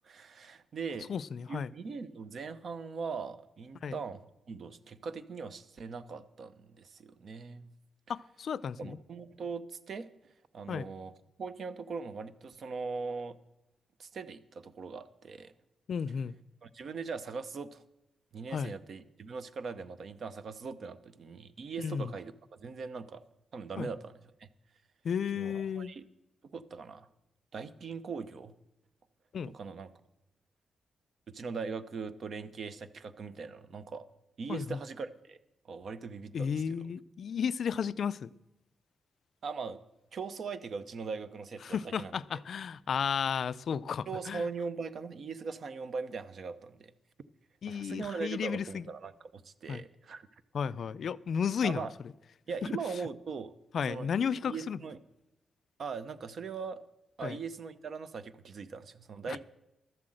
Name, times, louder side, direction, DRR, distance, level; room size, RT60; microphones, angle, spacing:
voice 1, 0.0-1.1 1.5-4.2 4.5-7.7 8.8-10.1 10.5-11.1 11.4-13.4 14.0-15.5 16.6-17.8 18.3-23.2 23.5-24.1 24.4-24.5 25.4-26.0 26.5-27.1 27.5-28.5 29.5-29.9 31.3-34.1 34.4-35.4 35.6-36.8 39.4-39.8 40.1-42.4 44.1-46.9 47.7-50.3 51.6-51.9 52.5-53.5 53.9-54.1 54.5-55.0 55.8-56.8 57.2-59.5, right 5 dB, 45° right, 12 dB, 0.7 m, -40 dB
voice 2, 1.1-1.7 3.8-4.0 8.1-9.0 10.7-10.9 15.9-16.3 18.5-18.7 21.8-22.1 23.8-23.9 25.0-25.9 29.3-29.5 34.5-34.8 36.3-38.3 41.6-44.5 47.6-48.9 49.7-49.8 50.5-51.9 53.7-54.8 57.2-57.4 59.3-59.5, left 7 dB, 50° left, 17 dB, 0.3 m, -33 dB
12.5 x 7.7 x 7.7 m, 0.94 s
wide cardioid pair, 170°, 0 cm